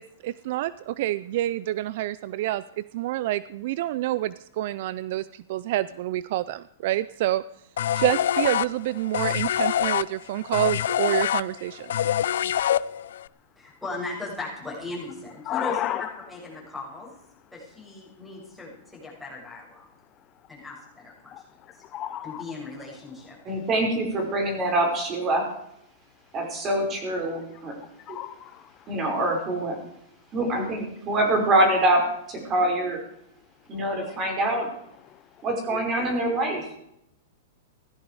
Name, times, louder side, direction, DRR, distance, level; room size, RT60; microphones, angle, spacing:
voice 1, 0.0-7.4 7.9-12.0, right 15 dB, 55° right, 0.5 m, -28 dB
sound 1, 7.8-13.3, left 10 dB, 75° left, 0.5 m, -25 dB
voice 2, 13.6-15.8 16.3-17.1 17.5-19.9 20.5-21.8 22.2-23.4, left 2 dB, ahead, 6.8 m, -38 dB
voice 3, 15.5-16.1 20.2-20.3 21.3-22.4 27.2-28.8 33.7-33.8 35.0-35.4, left 12 dB, 30° left, 0.7 m, -34 dB
voice 4, 23.5-25.5 26.3-27.7 28.9-29.8 30.3-32.1 32.5-33.0 33.7-34.7 35.4-36.8, right 1 dB, 25° right, 5.4 m, -24 dB
17.0 x 14.0 x 4.8 m
hypercardioid pair, 140°, 0 cm